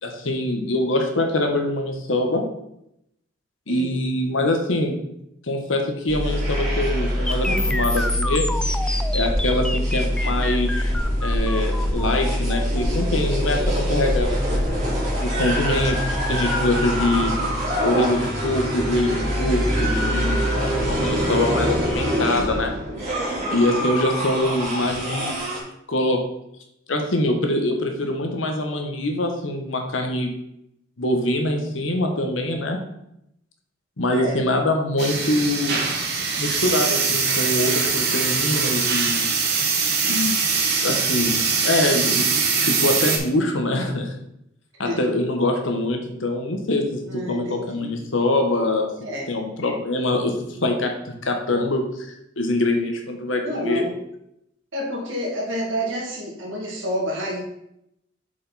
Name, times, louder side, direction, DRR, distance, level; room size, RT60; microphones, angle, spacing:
voice 1, 0.0-2.4 3.7-4.9 5.4-8.4 9.1-10.9 11.2-14.6 15.2-16.0 16.3-17.3 17.8-22.7 23.5-25.4 25.9-26.2 26.9-30.3 31.0-32.8 34.0-35.8 36.4-39.3 40.0-40.3 40.8-42.2 42.6-44.1 44.8-48.9 49.3-52.1 52.4-53.8, left 1 dB, 90° left, 3 dB, 1.3 m, -24 dB
sound 1, 6.1-25.6, equal, 35° right, 3.0 m, -24 dB
sound 2, 7.3-15.2, left 1 dB, 5° left, 0.3 m, -30 dB
voice 2, 20.4-21.2 34.1-34.4 44.8-45.0 47.0-47.9 49.0-49.3 50.6-50.9 53.4-53.9 54.7-57.4, equal, 80° right, -2 dB, 2.3 m, -29 dB
sound 3, 35.0-43.2, right 5 dB, 55° right, 1.3 m, -22 dB
7.5 x 5.1 x 4.2 m, 0.80 s
head